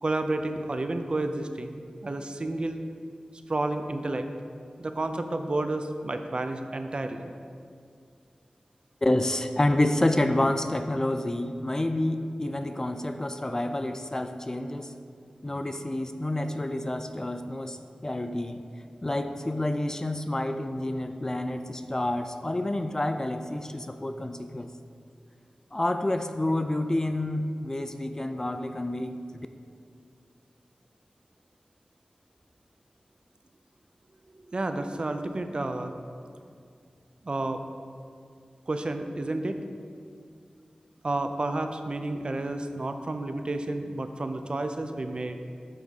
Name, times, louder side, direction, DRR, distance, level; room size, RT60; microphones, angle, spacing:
voice 1, 0.0-2.8 3.5-4.3 4.8-7.3 34.4-35.9 37.2-37.6 38.7-39.6 41.0-45.4, right 2 dB, 45° right, 7 dB, 0.5 m, -31 dB
voice 2, 9.0-14.9 15.4-18.6 19.0-24.7 25.7-29.5, left 1 dB, 25° left, 8 dB, 0.4 m, -28 dB
9.0 x 3.6 x 6.4 m, 2.3 s
wide cardioid pair, 90°, 2 cm